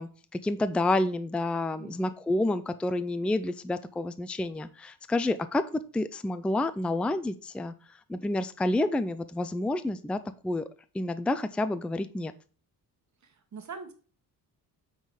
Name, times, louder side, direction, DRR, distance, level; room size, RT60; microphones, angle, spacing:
voice 1, 0.0-5.6 5.9-7.7 8.1-10.7 10.9-12.3, left 2 dB, 5° left, 12 dB, 0.4 m, -29 dB
voice 2, 1.8-2.1 13.2-13.9, right 5 dB, 45° right, 7 dB, 1.5 m, -43 dB
7.9 x 4.0 x 4.9 m, 0.39 s
cardioid pair, 95°, 39 cm